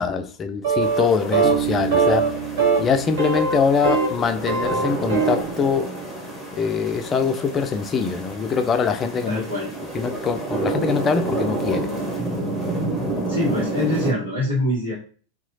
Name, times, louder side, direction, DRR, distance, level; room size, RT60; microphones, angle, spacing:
voice 1, 0.0-2.3 2.8-5.9 6.6-9.4 9.9-11.9, left 6 dB, 25° left, 0.3 m, -23 dB
sound 1, 0.6-1.1 1.3-1.6 1.9-2.3 2.6-2.8 3.2-4.2 4.4-5.4, right 4 dB, 55° right, 0.8 m, -20 dB
sound 2, 0.8-14.1, right 2 dB, 5° left, 0.8 m, -30 dB
Bass guitar, 1.4-4.9, right 9 dB, 25° right, 1.0 m, -31 dB
voice 2, 9.3-9.7 13.3-14.9, left 1 dB, 80° right, 1.0 m, -24 dB
2.8 x 2.3 x 2.7 m
figure-of-eight pair, 90°, 0 cm